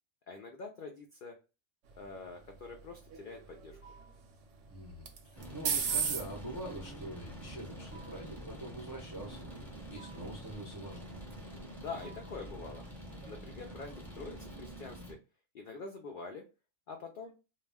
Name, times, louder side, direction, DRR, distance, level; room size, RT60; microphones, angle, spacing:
voice 1, 0.3-1.4 2.0-3.8 11.7-12.8 13.3-15.2 15.5-16.4 16.9-17.3, left 4 dB, 75° left, 3 dB, 0.4 m, -45 dB
sound 1, 1.8-13.7, right 6 dB, 70° right, 0.9 m, -42 dB
sound 2, 3.8-4.3 5.9-6.4 7.9-8.4 10.0-10.4 12.0-12.5, right 5 dB, 50° left, 0.8 m, -57 dB
voice 2, 4.7-9.5 9.9-11.1, right 1 dB, 25° right, -2 dB, 0.4 m, -44 dB
sound 3, 5.4-15.1, equal, ahead, 0.7 m, -47 dB
2.3 x 2.2 x 3.3 m, 0.30 s
omnidirectional pair, 1.4 m